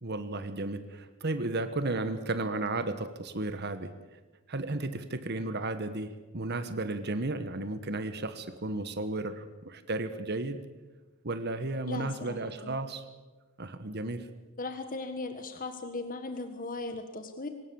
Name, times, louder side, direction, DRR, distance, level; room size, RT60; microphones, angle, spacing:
voice 1, 0.0-3.9 4.5-10.6 11.2-13.1 13.6-14.3, right 2 dB, 55° right, 10 dB, 1.4 m, -34 dB
voice 2, 11.9-12.8 14.6-17.5, left 3 dB, 40° left, 7 dB, 1.5 m, -38 dB
23.5 x 19.5 x 7.2 m, 1.2 s
head